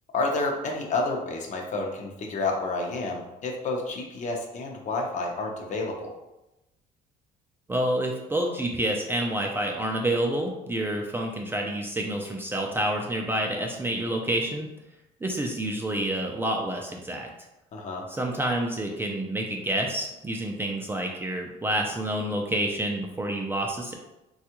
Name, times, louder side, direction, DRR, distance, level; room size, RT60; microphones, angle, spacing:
voice 1, 0.1-6.1 17.7-18.1, left 3 dB, 45° left, 1 dB, 0.7 m, -30 dB
voice 2, 7.7-14.7 15.2-17.3 18.1-23.9, right 1 dB, 15° right, 0 dB, 0.3 m, -28 dB
3.4 x 2.3 x 2.9 m, 0.95 s
cardioid pair, 110°, 17 cm